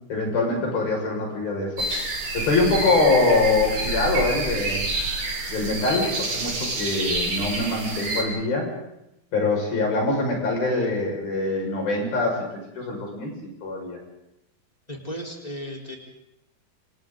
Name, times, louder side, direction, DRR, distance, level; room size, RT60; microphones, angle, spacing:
voice 1, 0.0-1.8 2.3-4.9 5.5-8.7 9.3-12.5 12.7-14.0, left 3 dB, 65° left, 0 dB, 7.6 m, -24 dB
sound 1, 1.8-8.2, right 2 dB, 50° right, 5.2 m, -28 dB
voice 2, 14.9-16.0, equal, 10° left, -1 dB, 3.9 m, -35 dB
28.5 x 28.5 x 4.0 m, 0.85 s
omnidirectional pair, 4.5 m